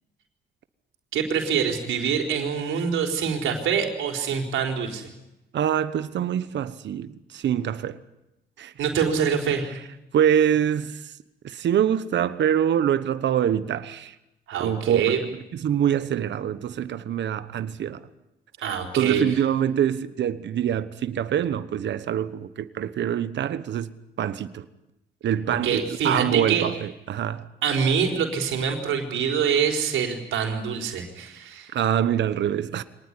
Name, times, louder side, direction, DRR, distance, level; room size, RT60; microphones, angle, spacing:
voice 1, 1.1-5.1 8.8-9.6 14.5-15.2 18.6-19.2 25.5-26.6 27.6-31.7, right 7 dB, 80° right, 4.4 m, -25 dB
voice 2, 5.5-8.0 8.6-8.7 9.5-9.8 10.1-11.1 11.4-14.2 14.6-18.1 19.0-23.9 24.2-24.6 25.2-27.5 31.7-32.8, right 9 dB, 65° right, 1.2 m, -25 dB
24.5 x 19.0 x 9.8 m
cardioid pair, 90°, 20 cm